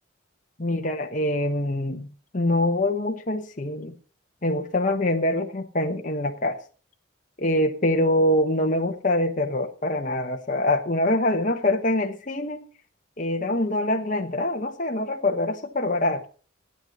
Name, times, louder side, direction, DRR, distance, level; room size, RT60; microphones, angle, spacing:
voice 1, 0.6-4.0 4.4-6.6 7.4-12.6 13.2-16.3, left 1 dB, 40° left, 1.1 m, -24 dB
15.5 x 9.4 x 5.3 m
head